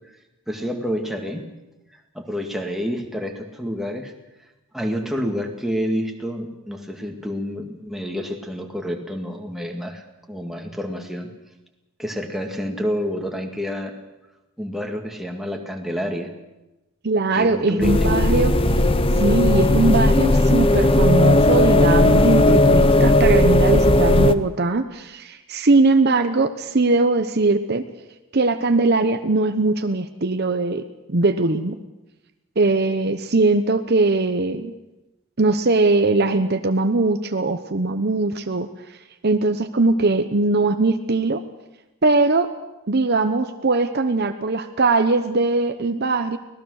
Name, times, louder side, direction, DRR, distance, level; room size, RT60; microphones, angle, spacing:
voice 1, 0.5-1.5 2.1-4.1 4.7-11.3 12.0-13.9 14.6-16.3 17.3-18.1, equal, ahead, 2 dB, 2.0 m, -28 dB
voice 2, 17.0-18.5 19.1-27.8 28.3-30.8 31.1-31.8 32.6-34.7 35.4-38.7 39.2-41.4 42.0-42.5 42.9-46.4, right 3 dB, 50° right, 8 dB, 0.9 m, -20 dB
sound 1, 17.8-24.3, left 1 dB, 25° left, 0.7 m, -16 dB
24.5 x 18.0 x 6.5 m, 1.0 s
head